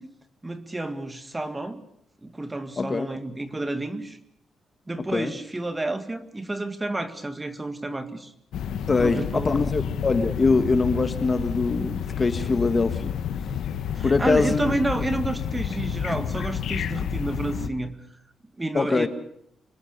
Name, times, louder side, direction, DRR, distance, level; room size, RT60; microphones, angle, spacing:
voice 1, 0.4-1.8 2.2-4.2 4.9-8.3 8.9-9.7 14.0-18.0 18.6-19.1, right 2 dB, 15° right, 10 dB, 1.9 m, -30 dB
voice 2, 2.8-3.1 5.1-5.3 8.9-13.1 14.0-14.7 16.1-16.2 18.7-19.1, left 3 dB, 25° left, 10 dB, 1.4 m, -23 dB
sound 1, 8.5-17.7, left 8 dB, 85° left, 1.7 m, -30 dB
25.5 x 20.5 x 6.7 m, 0.72 s
wide cardioid pair, 155°, 0 cm